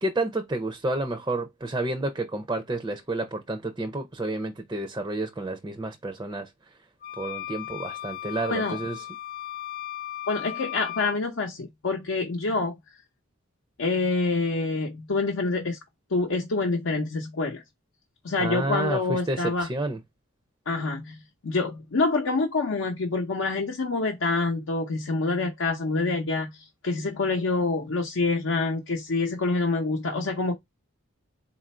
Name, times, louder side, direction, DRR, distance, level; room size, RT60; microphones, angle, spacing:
voice 1, 0.0-6.5 7.2-9.0 18.4-20.0, right 2 dB, 20° right, 0.4 m, -30 dB
sound 1, 7.0-11.2, left 13 dB, 40° left, 0.5 m, -36 dB
voice 2, 8.5-8.8 10.3-12.8 13.8-15.8 16.1-17.6 18.2-19.7 20.7-30.5, left 3 dB, 80° left, 0.7 m, -26 dB
4.1 x 2.5 x 4.2 m
head